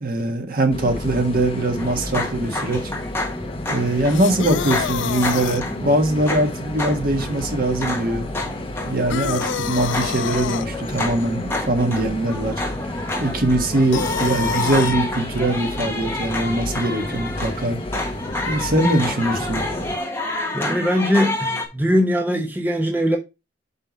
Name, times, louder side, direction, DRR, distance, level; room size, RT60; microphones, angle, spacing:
voice 1, 0.0-2.9 3.7-8.3 8.8-12.6 13.2-17.8 18.5-19.6, right 1 dB, 50° right, 1.6 m, -22 dB
sound 1, 0.7-20.0, left 1 dB, 30° left, 1.0 m, -31 dB
sound 2, 1.8-21.6, left 2 dB, 15° left, 1.6 m, -29 dB
sound 3, 4.1-5.6 9.1-10.7 13.9-15.0, left 7 dB, 80° left, 0.4 m, -27 dB
voice 2, 20.5-23.2, equal, 10° right, 0.9 m, -21 dB
5.6 x 5.0 x 5.1 m
head